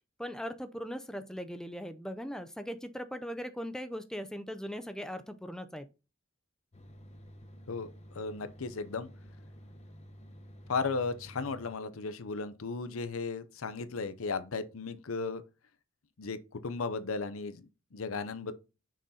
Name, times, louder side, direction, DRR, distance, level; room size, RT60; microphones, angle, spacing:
voice 1, 0.2-5.9, equal, 5° left, 0.5 m, -39 dB
sound 1, 6.7-11.7, equal, 35° left, 0.8 m, -51 dB
voice 2, 7.7-9.1 10.7-15.4 16.2-18.5, left 4 dB, 85° left, 0.7 m, -35 dB
6.3 x 3.9 x 4.1 m
head